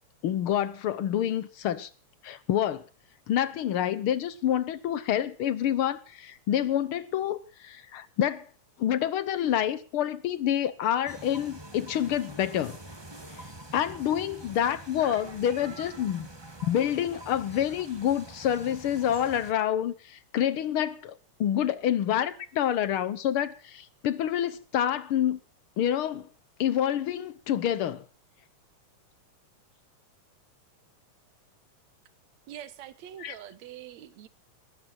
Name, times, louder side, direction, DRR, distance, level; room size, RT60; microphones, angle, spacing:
voice 1, 0.2-1.9 2.2-2.8 3.3-8.5 8.8-12.8 13.3-16.3 16.6-25.4 25.8-26.3 26.6-28.0 33.2-33.3, left 10 dB, 70° left, 1.3 m, -28 dB
sound 1, 11.1-19.5, right 2 dB, 10° right, 1.3 m, -45 dB
voice 2, 32.5-34.3, right 11 dB, 70° right, 2.5 m, -44 dB
20.0 x 14.0 x 4.4 m
omnidirectional pair, 3.4 m